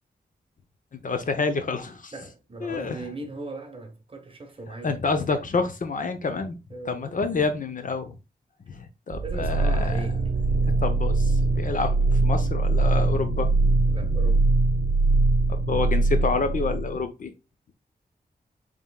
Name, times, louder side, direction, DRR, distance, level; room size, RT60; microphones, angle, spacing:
voice 1, 0.9-2.1 2.6-3.0 4.8-6.6 6.9-8.1 8.7-10.0 10.7-13.8 14.1-14.2 15.5-17.3, left 4 dB, 55° left, 0.7 m, -28 dB
voice 2, 2.1-5.0 6.7-7.2 9.2-10.2 13.9-14.5, right 2 dB, 35° right, 0.9 m, -38 dB
sound 1, 9.1-17.0, right 3 dB, 75° right, 0.7 m, -22 dB
5.3 x 3.6 x 2.2 m
wide cardioid pair, 160°, 17 cm